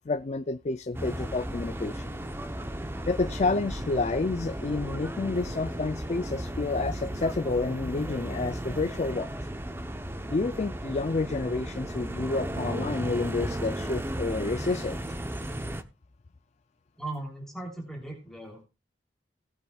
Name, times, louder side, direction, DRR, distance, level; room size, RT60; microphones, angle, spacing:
voice 1, 0.1-2.1 3.1-9.4 10.3-15.0, left 3 dB, 40° left, 0.5 m, -29 dB
sound 1, 0.9-15.8, right 1 dB, 15° right, 0.8 m, -35 dB
voice 2, 17.0-18.6, right 2 dB, 5° left, 3.2 m, -38 dB
19.0 x 8.1 x 2.4 m
head